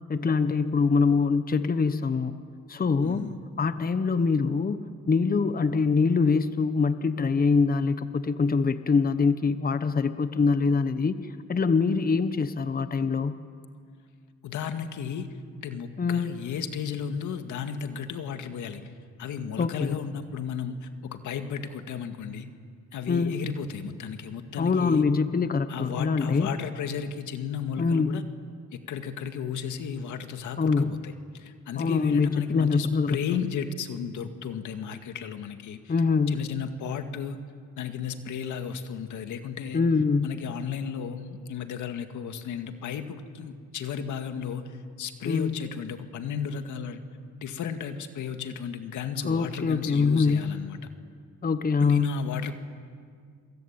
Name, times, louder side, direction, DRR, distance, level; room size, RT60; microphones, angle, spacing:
voice 1, 0.1-2.3 2.7-3.3 3.6-4.8 5.1-13.3 16.0-16.3 19.6-20.0 23.1-23.3 24.6-26.5 27.8-28.2 30.6-31.0 31.8-33.2 35.9-36.4 39.7-40.3 45.3-45.6 49.2-50.5 51.4-52.1, left 4 dB, 30° left, 11 dB, 1.1 m, -24 dB
voice 2, 3.0-3.4 14.4-18.8 19.2-22.5 22.9-25.0 25.7-28.2 28.7-35.9 36.3-37.4 37.8-39.8 40.2-47.0 47.4-50.8 51.8-52.5, left 7 dB, 80° left, 7 dB, 2.1 m, -34 dB
28.0 x 23.0 x 8.9 m, 2.1 s
cardioid pair, 90°, 30 cm